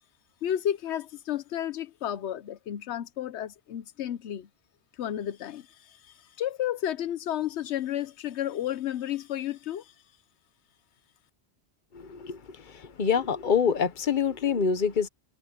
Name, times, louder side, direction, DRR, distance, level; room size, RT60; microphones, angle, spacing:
voice 1, 0.4-4.5 5.0-9.9, left 11 dB, 85° left, 1.0 m, -32 dB
voice 2, 11.9-15.1, left 6 dB, 50° left, 1.2 m, -26 dB
omnidirectional pair, 1.1 m